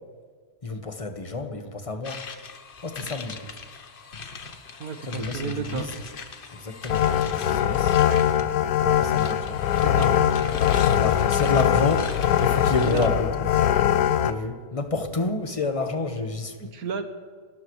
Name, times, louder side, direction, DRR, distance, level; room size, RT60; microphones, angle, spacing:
voice 1, 0.6-2.2 2.8-3.5 5.0-5.9 6.5-8.0 8.3-9.6 10.9-12.1 12.4-13.3 14.2-16.6, left 3 dB, 25° left, 5 dB, 1.2 m, -29 dB
sound 1, 2.0-8.5 9.0-13.1, left 4 dB, 40° left, 1.0 m, -39 dB
voice 2, 4.8-5.9 9.8-10.4 12.8-13.1 16.6-17.0, right 6 dB, 65° right, 7 dB, 1.7 m, -32 dB
sound 2, 6.9-14.3, left 10 dB, 80° left, 1.2 m, -22 dB
30.0 x 13.5 x 3.2 m, 1.5 s
omnidirectional pair, 1.7 m